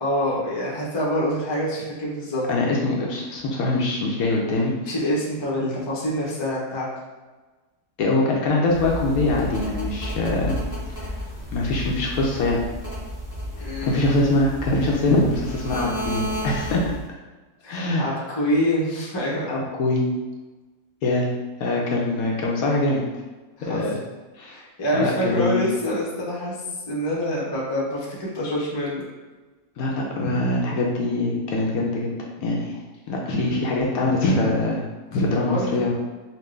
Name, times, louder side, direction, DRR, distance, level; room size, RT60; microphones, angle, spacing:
voice 1, 0.0-2.4 4.8-6.9 13.6-14.1 17.6-19.5 23.6-23.8 24.5-26.6 26.9-29.0 35.5-35.9, equal, 25° left, -5 dB, 0.6 m, -26 dB
voice 2, 2.5-4.7 8.0-10.6 11.0-11.1 11.5-12.6 13.8-16.9 17.7-18.1 19.5-20.1 21.0-21.3 21.6-23.0 23.7-24.0 24.4-24.6 24.9-25.6 29.8-32.1 32.4-32.8 33.1-34.8 35.1-35.9, left 2 dB, 70° left, -2 dB, 1.0 m, -23 dB
sound 1, 8.7-17.1, equal, 15° right, 0.7 m, -32 dB
4.3 x 2.2 x 3.2 m, 1.2 s
omnidirectional pair, 1.7 m